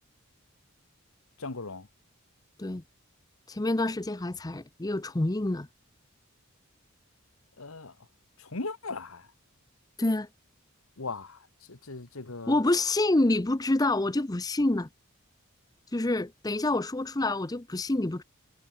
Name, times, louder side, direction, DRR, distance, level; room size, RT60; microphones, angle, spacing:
voice 1, 1.4-1.9 7.6-7.9 8.4-9.3 11.0-11.4 11.7-12.6, left 3 dB, 80° left, 1.5 m, -38 dB
voice 2, 3.5-5.7 10.0-10.3 12.5-14.9 15.9-18.2, left 2 dB, 15° left, 0.6 m, -27 dB
head